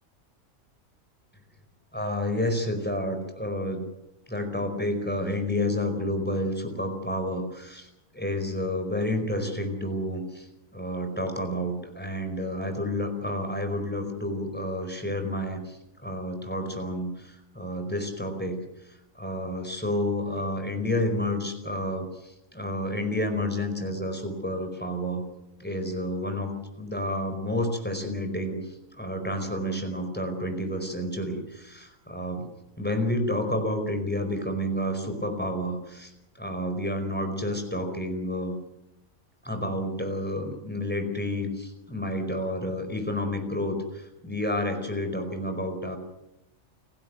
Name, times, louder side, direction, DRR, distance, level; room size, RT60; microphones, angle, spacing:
voice 1, 1.9-3.8 4.3-7.9 8.1-10.5 10.7-18.6 19.2-25.2 25.6-32.5 32.8-38.5 39.4-46.0, left 1 dB, 5° left, 5 dB, 4.7 m, -30 dB
29.5 x 16.0 x 7.8 m, 0.91 s
omnidirectional pair, 1.4 m